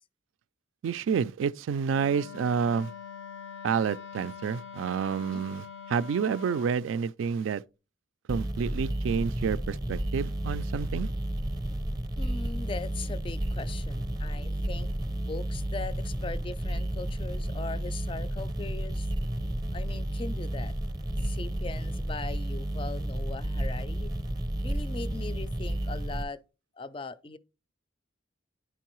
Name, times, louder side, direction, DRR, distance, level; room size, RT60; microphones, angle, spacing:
voice 1, 0.8-2.9 3.6-7.6 8.3-11.1, right 6 dB, 85° right, 0.3 m, -29 dB
Wind instrument woodwind instrument, 1.9-6.8, left 7 dB, 85° left, 0.9 m, -44 dB
sound 1, 8.3-26.2, right 1 dB, 20° right, 0.6 m, -32 dB
voice 2, 12.2-19.1 19.7-20.7 21.2-24.1 24.6-26.4 26.8-27.4, left 3 dB, 25° left, 0.4 m, -40 dB
9.9 x 4.5 x 3.0 m
head